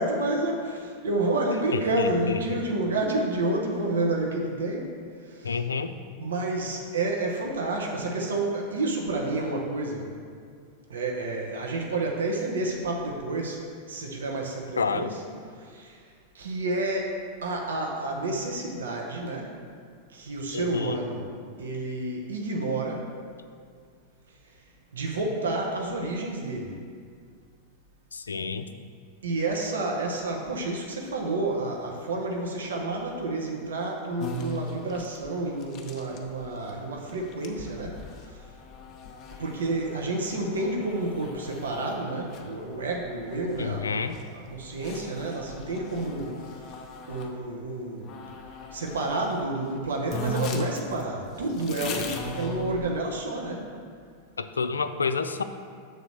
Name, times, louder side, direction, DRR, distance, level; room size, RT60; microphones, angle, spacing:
voice 1, 0.0-4.9 5.2-5.6 6.2-10.1 10.9-15.2 15.6-16.0 16.3-17.1 17.4-19.5 20.1-21.3 21.6-23.1 24.9-26.8 29.2-38.0 39.4-46.4 47.1-48.1 48.7-53.6, right 2 dB, 65° right, 0 dB, 0.8 m, -30 dB
voice 2, 2.0-2.4 5.4-5.9 14.8-15.1 20.5-21.0 28.1-28.7 43.6-44.1 54.4-55.4, left 5 dB, 75° left, 10 dB, 0.3 m, -29 dB
sound 1, 34.2-47.4 48.0-49.5 49.8-49.9 50.1-53.2, left 2 dB, 30° left, 0.7 m, -39 dB
6.7 x 3.9 x 6.3 m, 2.1 s
figure-of-eight pair, 90°, 0 cm